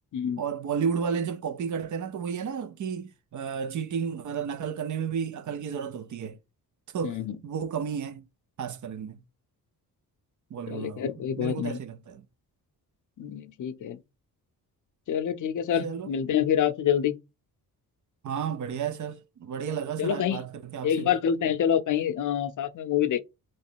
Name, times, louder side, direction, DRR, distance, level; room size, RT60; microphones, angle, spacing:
voice 1, 0.4-6.4 6.9-8.3 8.6-9.2 10.5-11.1 11.4-12.2 15.8-16.1 18.2-21.2, right 7 dB, 50° right, 0.5 m, -32 dB
voice 2, 7.0-7.4 10.7-11.8 13.2-14.0 15.1-17.1 20.0-20.4 20.8-23.2, left 9 dB, 55° left, 0.5 m, -27 dB
3.2 x 3.0 x 4.4 m
wide cardioid pair, 145°, 38 cm